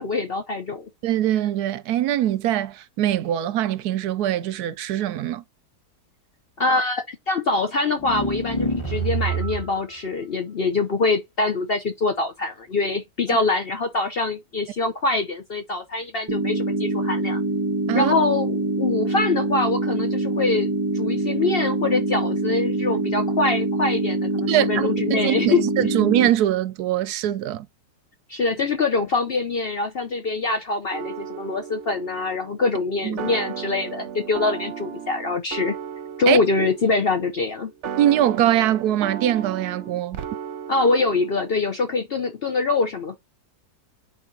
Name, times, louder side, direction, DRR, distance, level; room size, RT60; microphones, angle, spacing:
voice 1, 0.0-0.9 6.6-17.4 17.9-25.6 28.3-35.8 36.2-37.7 40.7-43.2, left 3 dB, 55° left, 0.7 m, -24 dB
voice 2, 1.0-5.4 13.3-13.4 17.9-18.1 24.5-27.7 33.0-33.2 36.3-36.4 38.0-40.2, right 12 dB, 75° right, 1.1 m, -22 dB
sound 1, 8.0-9.8, right 3 dB, 20° left, 1.4 m, -26 dB
sound 2, 16.3-26.3, right 2 dB, 35° right, 0.3 m, -24 dB
sound 3, 30.9-41.6, right 8 dB, 55° right, 1.0 m, -35 dB
10.5 x 4.3 x 2.7 m
omnidirectional pair, 1.8 m